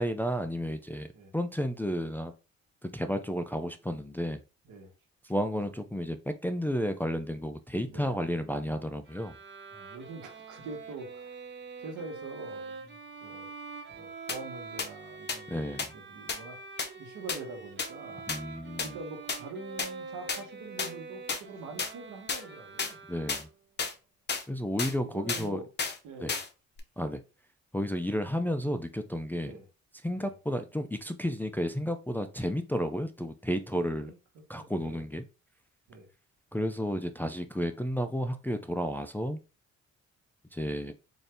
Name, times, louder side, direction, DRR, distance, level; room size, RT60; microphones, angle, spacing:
voice 1, 0.0-1.1 1.3-2.3 2.8-4.4 5.3-9.3 15.5-15.9 18.3-19.0 23.1-23.5 24.5-25.6 26.2-26.3 27.0-27.2 27.7-29.5 30.0-34.1 34.5-35.2 36.5-39.4 40.5-40.9, equal, 5° left, 0.3 m, -32 dB
voice 2, 7.9-8.7 9.7-11.4 11.8-13.5 13.9-16.6 16.9-18.3 18.8-23.0 25.0-25.7 26.0-26.4 29.4-29.7 30.2-30.3 33.7-34.1 34.6-35.0 35.9-36.1, right 3 dB, 85° right, 1.2 m, -45 dB
Bowed string instrument, 9.0-23.7, right 4 dB, 35° right, 0.8 m, -45 dB
sound 1, 14.3-14.4 14.8-14.9 15.3-15.4 15.8-15.9 16.3-16.4 16.8-16.9 17.3-17.4 17.8-17.9 18.3-18.4 18.8-18.9 19.3-19.4 19.8-19.9 20.3-20.4 20.8-20.9 21.3-21.4 21.8-21.9 22.3-22.4 22.8-22.9 23.3-23.4 23.8-23.9 24.3-24.4 24.8-24.9 25.3-25.4 25.8-26.0 26.3-26.5 26.8-26.9, left 5 dB, 35° left, 0.9 m, -31 dB
3.9 x 2.6 x 3.4 m
cardioid pair, 90°, 30 cm